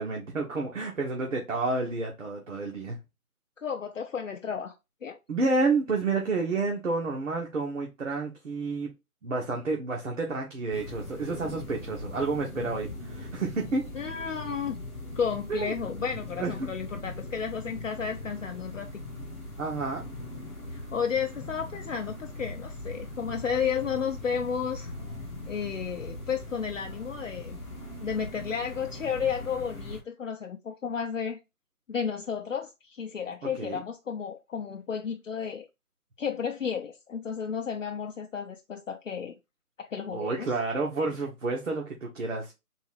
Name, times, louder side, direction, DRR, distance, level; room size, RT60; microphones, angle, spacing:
voice 1, 0.0-3.0 5.3-8.9 9.2-13.8 15.5-15.7 16.4-16.7 17.7-17.8 19.6-20.0 33.6-33.8 40.1-42.5, right 3 dB, 55° right, 1.1 m, -30 dB
voice 2, 3.6-4.8 5.0-5.2 13.9-14.8 15.2-18.9 20.7-24.9 25.5-27.6 28.0-31.4 31.9-35.7 36.2-39.4 39.8-40.5, left 7 dB, 55° left, 0.6 m, -32 dB
sound 1, 10.7-30.0, left 2 dB, 5° right, 0.8 m, -40 dB
4.0 x 2.8 x 3.9 m
figure-of-eight pair, 165°, 45 cm